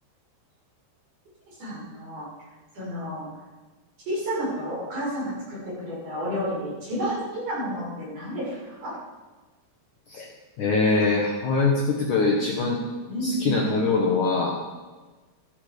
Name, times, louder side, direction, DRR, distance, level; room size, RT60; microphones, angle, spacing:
voice 1, 1.6-2.3 2.7-3.3 4.1-9.0 13.1-13.7, equal, 40° right, -6 dB, 7.4 m, -31 dB
voice 2, 10.6-12.8 13.2-14.6, left 3 dB, 90° left, -1 dB, 1.7 m, -23 dB
13.5 x 13.5 x 5.0 m, 1.3 s
omnidirectional pair, 5.6 m